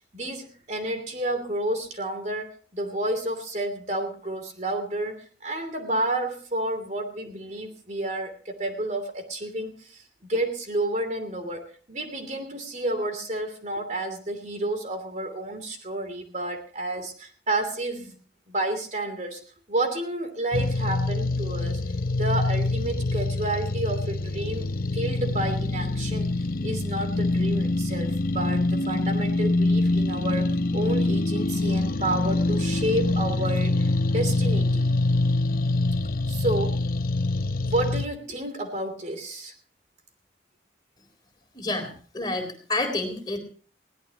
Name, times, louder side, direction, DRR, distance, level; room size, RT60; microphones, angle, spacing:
voice 1, 0.1-5.2 5.4-10.0 10.3-18.1 18.5-19.4 19.7-21.8 22.2-34.8 36.3-36.8 37.6-39.5, right 1 dB, 40° right, 6 dB, 3.0 m, -30 dB
sound 1, 20.5-38.1, left 2 dB, 50° left, 0.8 m, -25 dB
voice 2, 41.5-43.4, left 2 dB, 25° left, 5 dB, 3.8 m, -29 dB
22.0 x 17.5 x 2.9 m, 0.39 s
head